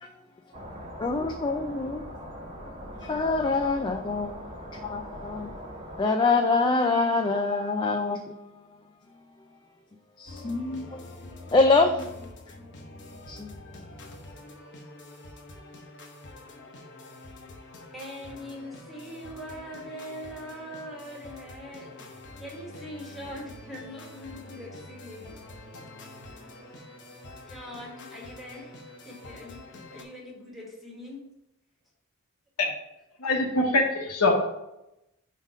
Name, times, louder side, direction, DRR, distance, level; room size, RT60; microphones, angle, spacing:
sound 1, 0.5-6.0, equal, 30° right, 1.1 m, -41 dB
voice 1, 1.0-5.5 6.0-8.5 10.2-11.0 11.5-12.3 13.3-13.5, left 3 dB, 20° left, 0.3 m, -26 dB
sound 2, 10.3-30.0, left 2 dB, 55° left, 0.9 m, -46 dB
voice 2, 17.9-25.3 27.4-28.7 29.0-31.3, equal, ahead, 1.5 m, -42 dB
voice 3, 33.2-34.3, left 2 dB, 75° left, 1.1 m, -23 dB
5.2 x 4.0 x 4.9 m
head